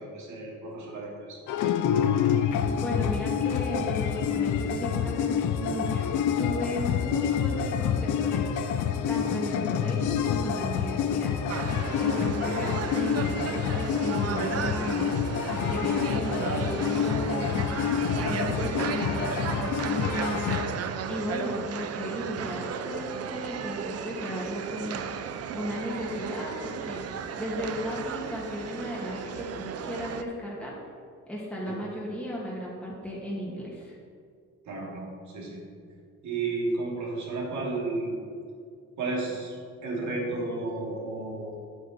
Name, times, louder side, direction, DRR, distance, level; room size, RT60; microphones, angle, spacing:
voice 1, 0.0-1.4 9.2-9.4 12.0-12.3 31.7-31.8 34.7-35.6 36.2-38.3 39.0-39.5 39.8-41.6, right 3 dB, 70° right, -3 dB, 2.8 m, -33 dB
sound 1, 1.5-20.6, left 8 dB, 80° left, 0.7 m, -27 dB
voice 2, 2.8-6.1 6.4-8.4 9.1-11.4 12.0-15.1 15.5-17.8 18.1-20.7 21.1-25.0 25.5-30.7 31.3-34.0, equal, 5° left, -6 dB, 2.1 m, -35 dB
sound 2, 11.5-30.2, right 7 dB, 55° right, 0.6 m, -35 dB
9.2 x 8.2 x 4.3 m, 2.2 s
cardioid pair, 90°, 30 cm